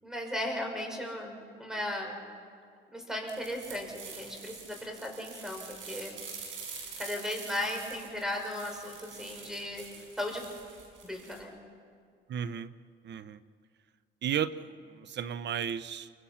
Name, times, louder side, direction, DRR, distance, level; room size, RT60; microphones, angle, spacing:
voice 1, 0.0-2.2 2.9-6.2 7.0-9.8 10.2-10.4 11.0-11.5, left 1 dB, 5° right, 2 dB, 6.1 m, -36 dB
sound 1, 3.3-11.4, right 5 dB, 80° right, 5.8 m, -46 dB
voice 2, 12.3-12.7 13.0-13.4 14.2-16.1, right 8 dB, 60° right, 14 dB, 0.9 m, -34 dB
28.5 x 25.0 x 5.8 m, 2.1 s
cardioid pair, 90°, 20 cm